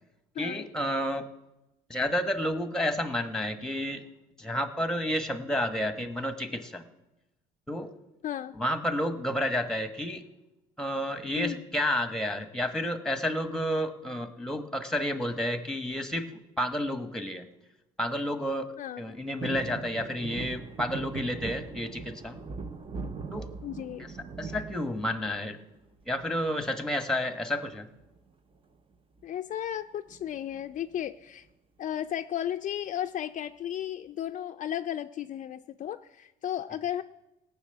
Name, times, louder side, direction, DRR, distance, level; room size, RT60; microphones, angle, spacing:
voice 1, 0.4-1.3 1.9-4.0 4.4-6.8 7.7-7.9 8.5-10.2 10.8-17.5 18.0-18.7 19.0-22.4 23.3-23.5 24.0-24.1 24.4-25.6 26.1-27.9, left 1 dB, 5° left, 9 dB, 1.3 m, -30 dB
voice 2, 8.2-8.6 11.4-11.7 18.8-19.0 23.0-23.1 23.6-24.1 29.2-31.5 31.8-37.0, left 11 dB, 50° left, 8 dB, 0.5 m, -34 dB
sound 1, 19.4-25.6 26.0-26.6 27.9-28.3 28.6-28.7 28.9-29.2 30.1-31.0 31.5-31.6, right 5 dB, 30° right, 0.9 m, -40 dB
17.5 x 6.3 x 8.9 m, 0.97 s
cardioid pair, 110°, 17 cm